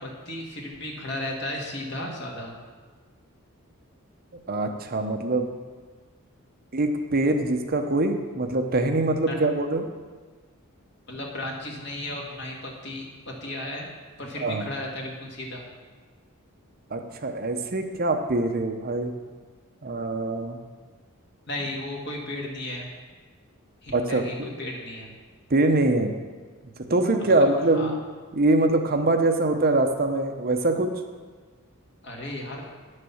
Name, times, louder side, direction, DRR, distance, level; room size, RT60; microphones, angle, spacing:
voice 1, 0.0-2.5 9.3-9.4 11.1-13.9 14.2-15.6 21.5-22.9 23.8-25.1 27.3-27.4 27.7-28.0 32.0-32.6, left 1 dB, 55° left, -1 dB, 2.1 m, -34 dB
voice 2, 4.5-5.5 6.7-9.9 14.3-14.7 16.9-19.1 19.8-20.6 21.6-21.7 23.9-24.6 25.5-26.1 26.9-27.9 28.3-30.9, right 2 dB, 45° right, 5 dB, 0.8 m, -23 dB
9.8 x 6.6 x 7.1 m, 1.4 s
head